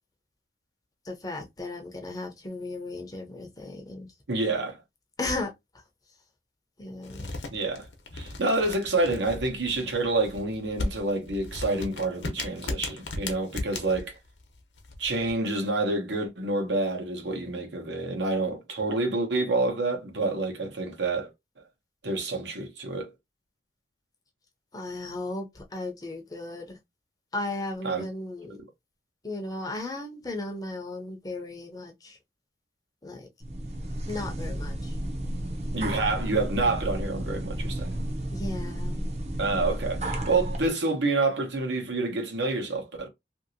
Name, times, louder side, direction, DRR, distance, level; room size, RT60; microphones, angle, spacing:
voice 1, 1.0-4.1 5.2-5.5 6.8-7.3 24.7-26.8 27.3-28.6 29.2-32.2 33.0-33.3 34.1-34.9 38.3-39.0, left 2 dB, 20° left, 0.5 m, -35 dB
voice 2, 4.3-4.8 7.5-7.8 8.1-14.1 15.0-21.3 22.0-23.1 27.8-28.0 28.5-28.6 35.7-37.9 39.4-43.1, right 2 dB, 85° right, 1.0 m, -28 dB
sound 1, 7.0-15.3, left 2 dB, 85° left, 0.8 m, -37 dB
sound 2, 33.4-40.7, right 1 dB, 40° right, 0.6 m, -32 dB
2.8 x 2.7 x 2.6 m
head